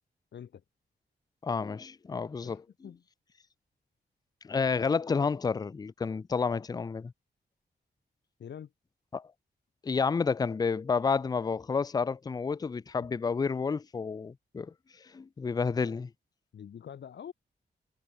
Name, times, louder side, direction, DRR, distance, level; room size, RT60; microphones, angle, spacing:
voice 1, 0.3-0.6 2.4-3.0 8.4-8.7 16.5-17.3, left 8 dB, 80° left, 1.8 m, -45 dB
voice 2, 1.4-2.6 4.4-7.1 9.1-9.3 9.8-14.7 15.1-16.1, left 5 dB, 20° left, 0.4 m, -30 dB
wide cardioid pair, 120°, 18 cm